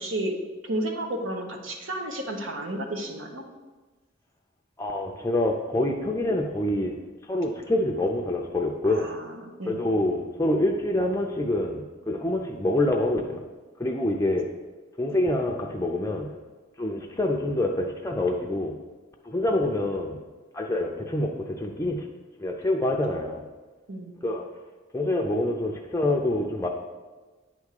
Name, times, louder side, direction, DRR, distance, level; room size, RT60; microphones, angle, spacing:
voice 1, 0.0-3.4 8.8-9.8 23.9-24.2, right 1 dB, 75° right, 3 dB, 1.1 m, -32 dB
voice 2, 4.8-7.0 7.2-9.1 9.7-13.5 13.8-14.5 15.0-16.3 16.8-18.8 19.2-20.2 20.5-22.1 22.4-23.4 24.2-24.4 24.9-26.7, left 1 dB, 15° left, 1 dB, 0.5 m, -26 dB
9.1 x 3.6 x 6.5 m, 1.3 s
head